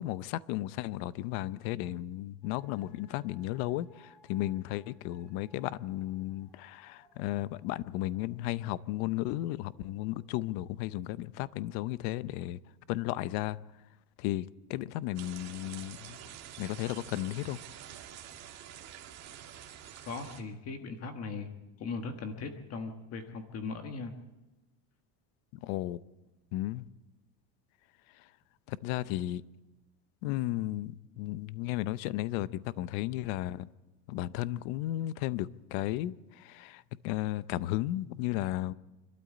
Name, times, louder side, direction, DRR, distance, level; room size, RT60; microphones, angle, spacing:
voice 1, 0.0-12.6 12.9-13.6 14.2-16.2 16.6-17.6 25.6-26.0 26.5-26.8 28.2-28.3 28.7-29.4 30.2-33.7 34.1-38.7, left 15 dB, 70° left, 0.8 m, -34 dB
sound 1, 2.4-11.3, equal, ahead, 3.4 m, -64 dB
sound 2, 15.1-20.4, right 10 dB, 35° right, 2.1 m, -47 dB
voice 2, 20.1-21.5 21.8-24.1, left 4 dB, 35° left, 1.5 m, -39 dB
26.0 x 13.0 x 8.5 m
cardioid pair, 170°, 43 cm